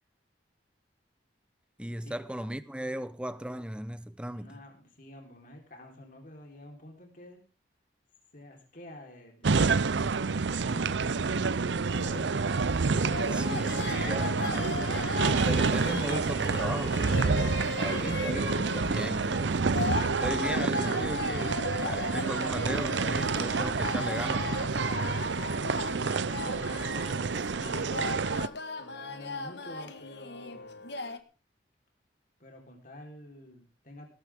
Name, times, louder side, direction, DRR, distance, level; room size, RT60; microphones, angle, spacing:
voice 1, 1.8-4.5 13.3-19.5 20.2-24.7, equal, 5° right, 0.7 m, -37 dB
voice 2, 4.3-7.4 8.3-12.4 26.3-27.9 28.8-31.0 32.4-34.1, left 1 dB, 45° left, 4.0 m, -50 dB
sound 1, 9.4-28.5, right 4 dB, 75° right, 0.6 m, -28 dB
sound 2, 11.9-31.2, left 3 dB, 65° left, 1.4 m, -37 dB
19.0 x 14.0 x 3.6 m
head